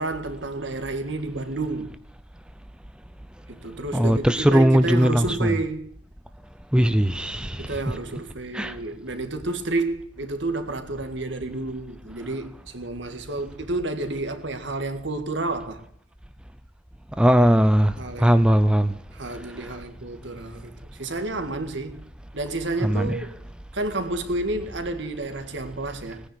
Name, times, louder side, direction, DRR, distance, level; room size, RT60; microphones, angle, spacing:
voice 1, 0.0-2.0 3.5-5.9 7.6-15.8 18.0-18.4 19.1-22.1 22.3-23.4 23.7-26.2, right 2 dB, 60° right, 1.9 m, -30 dB
voice 2, 3.9-5.5 6.7-7.7 8.5-8.7 17.2-17.9 18.2-18.9 22.8-23.2, equal, 5° right, 0.5 m, -19 dB
18.0 x 10.0 x 8.0 m
head